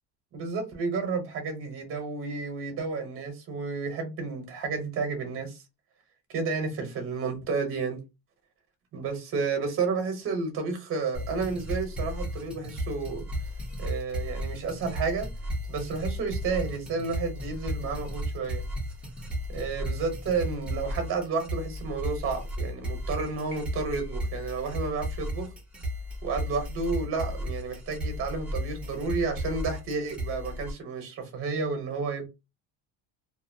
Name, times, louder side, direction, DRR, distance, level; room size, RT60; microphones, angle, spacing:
voice 1, 0.3-5.6 6.3-8.0 8.9-13.2 13.8-15.3 15.7-18.6 19.5-25.5 26.2-32.3, right 4 dB, 30° right, 0.8 m, -31 dB
sound 1, 11.1-30.7, equal, 5° right, 0.4 m, -34 dB
sound 2, 23.2-24.4, left 1 dB, 35° left, 0.7 m, -48 dB
2.6 x 2.4 x 2.6 m
cardioid pair, 180°, 43 cm